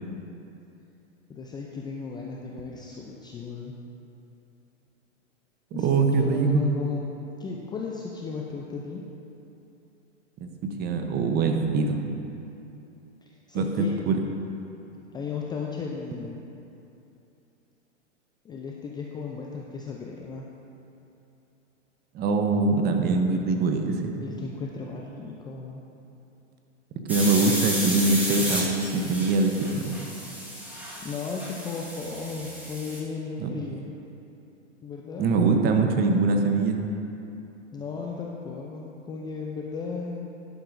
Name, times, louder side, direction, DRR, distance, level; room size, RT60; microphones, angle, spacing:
voice 1, 1.3-3.7 5.7-7.1 7.4-9.0 13.2-13.9 15.1-16.4 18.4-20.5 24.2-25.8 31.0-33.8 34.8-35.3 37.7-40.3, left 5 dB, 10° left, -2 dB, 0.4 m, -35 dB
voice 2, 5.7-6.6 10.4-10.5 10.8-12.0 13.5-14.2 22.1-24.1 27.1-30.0 33.4-33.5 35.2-36.8, right 3 dB, 25° right, 4 dB, 0.9 m, -23 dB
sound 1, 27.1-33.0, equal, 5° right, 1.5 m, -32 dB
11.5 x 11.0 x 2.6 m, 2.8 s
hypercardioid pair, 115°, 37 cm